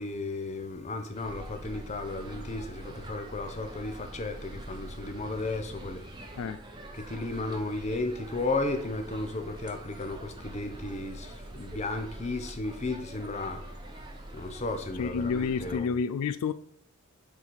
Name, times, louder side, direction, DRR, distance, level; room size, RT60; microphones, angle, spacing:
voice 1, 0.0-6.0 7.0-13.6 14.3-15.9, left 2 dB, 30° left, 0.7 m, -34 dB
sound 1, 1.1-15.8, right 1 dB, 20° right, 0.8 m, -44 dB
voice 2, 15.0-16.5, left 5 dB, 90° left, 0.3 m, -29 dB
7.1 x 4.1 x 4.6 m
head